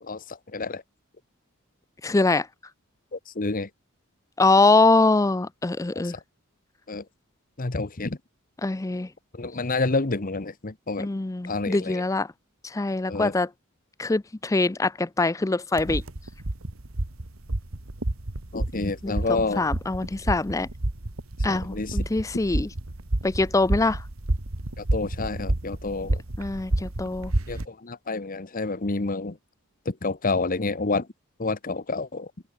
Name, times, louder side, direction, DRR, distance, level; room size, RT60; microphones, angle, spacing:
voice 1, 0.0-0.8 3.1-3.7 5.9-6.2 6.9-7.0 7.6-8.2 9.3-11.1 11.4-12.0 13.1-13.3 18.5-19.7 21.5-22.0 24.8-26.2 27.5-29.4 29.8-31.1 31.4-32.3, left 3 dB, 40° left, 1.1 m, -29 dB
voice 2, 2.0-2.5 4.4-6.2 8.6-9.1 11.0-12.3 12.6-13.5 14.0-16.0 19.0-20.7 21.4-22.7 23.2-24.0 26.4-27.3, left 3 dB, 15° left, 0.4 m, -23 dB
sound 1, 15.7-27.7, right 1 dB, 75° right, 1.8 m, -30 dB
head